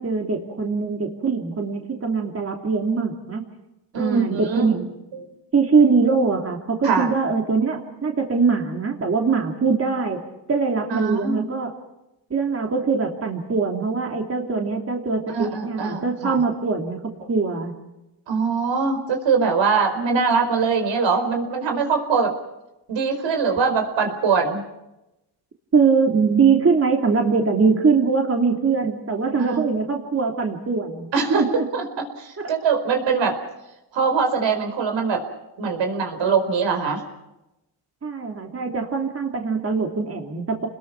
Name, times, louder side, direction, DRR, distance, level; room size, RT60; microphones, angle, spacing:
voice 1, 0.0-3.4 3.9-4.7 5.5-10.2 10.5-11.7 12.3-17.8 25.7-31.7 38.0-40.7, right 5 dB, 30° right, 2 dB, 3.0 m, -22 dB
voice 2, 3.9-4.8 5.1-5.3 6.8-7.1 10.9-11.5 15.3-16.4 18.3-22.3 22.9-24.6 29.5-29.6 31.1-33.4 33.9-35.2 35.6-37.0, right 5 dB, 70° right, 5 dB, 4.7 m, -22 dB
29.0 x 21.0 x 6.0 m, 0.93 s
cardioid pair, 105°, 46 cm